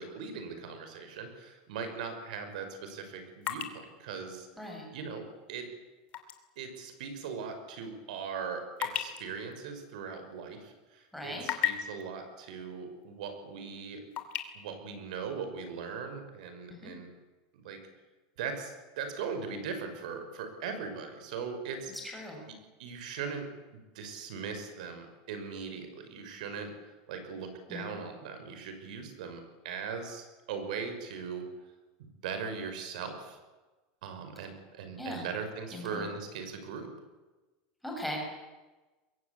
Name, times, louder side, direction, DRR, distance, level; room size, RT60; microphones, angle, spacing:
voice 1, 0.0-4.5 4.9-5.7 6.6-14.0 14.5-17.1 17.5-17.8 18.4-21.9 22.5-22.6 22.8-23.5 23.9-31.5 32.0-33.4 34.0-36.9, right 5 dB, 80° right, 7 dB, 5.8 m, -39 dB
sound 1, 1.3-1.5 2.0-6.5 6.8-6.9 7.5-10.7 11.0-12.0 13.0-13.1 13.5-14.4, left 12 dB, 35° left, 2.8 m, -37 dB
voice 2, 11.1-11.5 16.8-16.9 22.1-22.4 27.7-28.0 35.0-35.2 35.7-36.0 37.8-38.2, left 1 dB, ahead, -1 dB, 6.7 m, -39 dB
25.5 x 22.0 x 8.6 m, 1.2 s
supercardioid pair, 170°, 4 cm